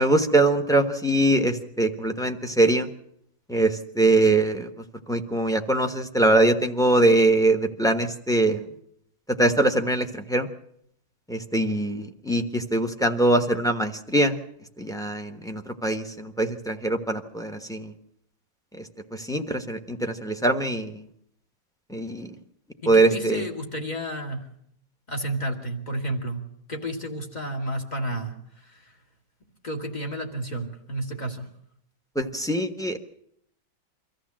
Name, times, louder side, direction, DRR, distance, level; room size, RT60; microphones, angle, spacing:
voice 1, 0.0-2.9 3.5-4.7 5.1-8.6 9.4-10.5 11.3-14.4 14.8-17.9 19.1-20.9 21.9-22.3 22.9-23.4 32.1-33.0, right 2 dB, 5° left, 6 dB, 1.1 m, -22 dB
voice 2, 22.8-24.5 25.1-26.4 26.7-28.9 29.6-31.5, right 1 dB, 25° left, 2 dB, 2.4 m, -31 dB
24.0 x 14.5 x 7.6 m, 0.72 s
omnidirectional pair, 1.6 m